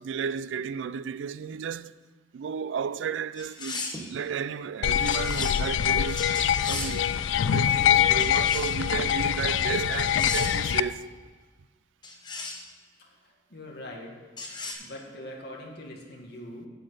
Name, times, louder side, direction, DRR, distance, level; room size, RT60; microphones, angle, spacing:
voice 1, 0.0-1.9 2.3-6.2 6.6-7.1 7.4-11.1, right 6 dB, 75° right, 0.3 m, -33 dB
sound 1, 3.4-4.1 5.1-5.6 6.2-7.0 8.2-8.8 10.0-10.7 12.0-12.6 14.4-14.7, left 3 dB, 25° left, 1.2 m, -36 dB
sound 2, 4.8-10.8, left 10 dB, 80° left, 0.3 m, -24 dB
voice 2, 13.0-14.2 14.7-16.7, left 1 dB, 55° left, 1.9 m, -43 dB
8.2 x 8.0 x 6.4 m
head